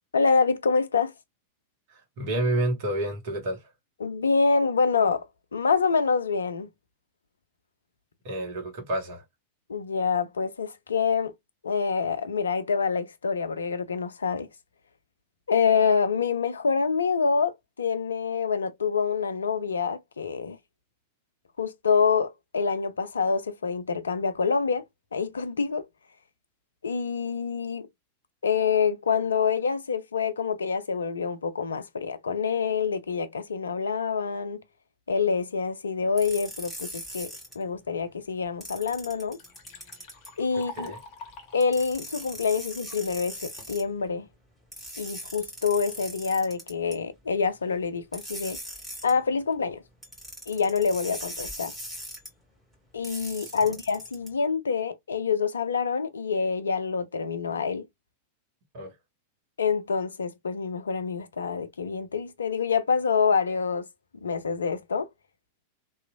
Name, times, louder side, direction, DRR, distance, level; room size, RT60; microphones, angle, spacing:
voice 1, 0.1-1.1 4.0-5.3 5.5-6.7 9.7-11.3 11.6-14.5 15.5-20.6 21.6-24.8 25.1-25.9 26.8-27.9 28.4-34.6 35.1-37.3 37.6-39.4 40.4-40.9 41.5-44.3 45.0-48.6 49.0-49.8 50.5-51.7 52.9-57.9 59.6-63.9 64.2-65.1, left 5 dB, 70° left, 0.4 m, -26 dB
voice 2, 1.9-3.7 8.2-9.2 40.8-41.0 53.4-53.7 58.7-58.9, right 1 dB, 50° right, 1.2 m, -30 dB
sound 1, 36.2-37.5 38.6-40.3 41.6-43.8 44.7-46.9 48.1-49.1 50.0-52.3 53.0-54.3, equal, 5° right, 1.8 m, -40 dB
Liquid, 38.5-38.6 39.0-43.0 43.6-44.1, left 4 dB, 45° left, 0.7 m, -46 dB
2.9 x 2.4 x 2.3 m
figure-of-eight pair, 90°, 0 cm